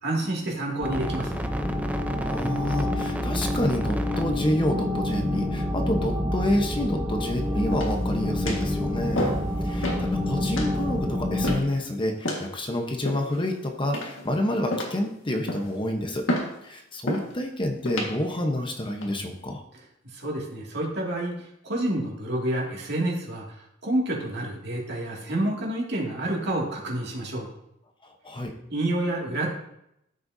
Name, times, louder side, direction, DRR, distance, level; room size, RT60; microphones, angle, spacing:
voice 1, 0.0-1.4 9.1-9.5 20.1-23.5 23.8-27.5 28.7-29.5, right 1 dB, 60° right, -2 dB, 2.4 m, -28 dB
sound 1, 0.8-11.6, left 1 dB, 10° right, 0.6 m, -27 dB
voice 2, 2.2-9.4 9.6-16.2 16.6-19.6 28.0-28.5, left 1 dB, 25° left, 3 dB, 1.0 m, -28 dB
sound 2, 7.7-8.1 8.5-8.7 9.2-9.5 9.8-10.1 10.6-10.8 11.4-11.8 12.2-12.5 13.1-13.5 13.9-14.3 14.7-15.1 15.5-15.8 16.3-16.6 17.1-17.3 17.9-18.1 18.8-19.1, left 1 dB, 75° left, 1.8 m, -30 dB
13.5 x 7.7 x 2.8 m, 0.79 s
head